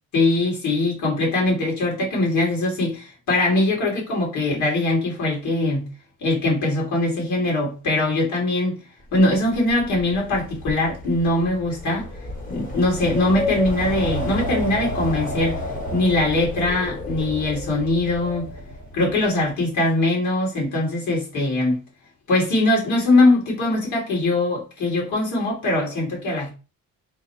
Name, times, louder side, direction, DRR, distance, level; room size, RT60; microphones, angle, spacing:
voice 1, 0.1-5.9 6.2-8.8 9.1-12.1 12.5-15.6 15.9-18.5 18.9-21.8 22.3-26.5, left 2 dB, 60° left, 2.3 m, -21 dB
Wind, 9.1-19.2, left 1 dB, 25° left, 1.2 m, -31 dB
3.8 x 2.2 x 4.2 m
cardioid pair, 140°, 33 cm